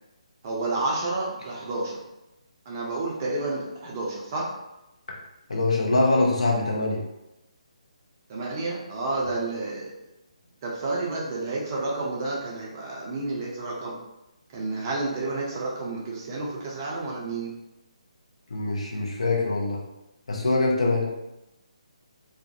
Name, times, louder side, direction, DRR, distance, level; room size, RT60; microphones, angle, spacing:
voice 1, 0.4-2.0 2.7-4.5 8.3-9.9 10.6-14.0 14.5-17.5, right 2 dB, 25° right, -3 dB, 0.5 m, -30 dB
voice 2, 5.5-7.0 18.5-19.8 20.3-21.1, left 2 dB, 60° left, -3 dB, 0.7 m, -23 dB
2.4 x 2.1 x 2.6 m, 0.93 s
figure-of-eight pair, 145°, 4 cm